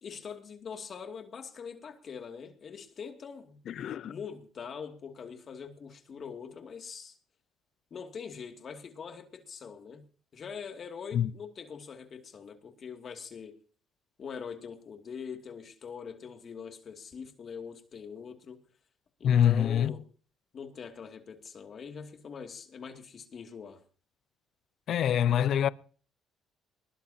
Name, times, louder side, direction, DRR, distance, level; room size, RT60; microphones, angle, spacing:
voice 1, 0.0-3.6 4.0-7.1 7.9-10.1 10.3-13.6 14.2-18.6 19.2-20.0 20.5-23.8, left 6 dB, 45° left, 2.4 m, -43 dB
voice 2, 3.7-4.1 11.1-11.3 19.2-19.9 24.9-25.7, left 9 dB, 60° left, 0.6 m, -25 dB
21.0 x 19.5 x 2.9 m
cardioid pair, 105°, 0 cm